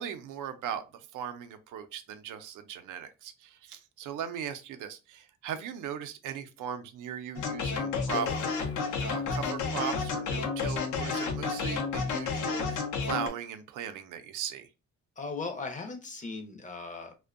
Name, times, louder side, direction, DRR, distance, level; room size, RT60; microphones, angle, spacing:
voice 1, 0.0-8.3 9.0-14.7, right 8 dB, 90° right, 9 dB, 0.5 m, -38 dB
sound 1, 7.4-13.3, left 5 dB, 80° left, 0.6 m, -31 dB
sound 2, 8.1-9.7, left 5 dB, 50° left, 0.8 m, -43 dB
voice 2, 15.2-17.1, left 4 dB, 25° left, 5 dB, 0.5 m, -38 dB
2.5 x 2.1 x 2.4 m, 0.29 s
cardioid pair, 120°, 30 cm